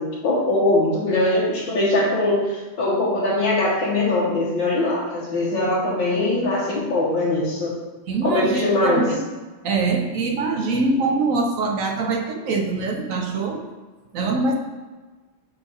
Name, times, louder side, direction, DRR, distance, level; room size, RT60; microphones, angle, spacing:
voice 1, 0.0-7.7 8.2-9.0, left 2 dB, 80° left, -7 dB, 1.8 m, -21 dB
voice 2, 8.1-9.2 9.6-13.7 14.1-14.5, right 3 dB, 70° right, 3 dB, 0.8 m, -23 dB
4.7 x 4.1 x 5.4 m, 1.3 s
omnidirectional pair, 2.0 m